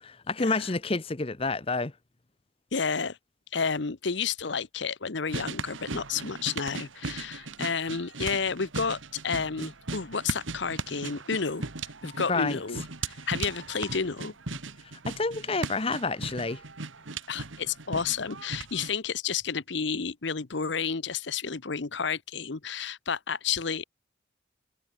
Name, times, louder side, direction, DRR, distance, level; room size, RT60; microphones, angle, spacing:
voice 1, 0.0-1.9 12.3-12.6 15.1-16.6, left 3 dB, 30° left, 0.8 m, -29 dB
voice 2, 2.7-3.2 3.5-11.7 12.0-14.3 17.3-23.8, left 5 dB, 65° left, 0.9 m, -31 dB
sound 1, 5.3-18.9, right 3 dB, 80° right, 2.0 m, -38 dB
head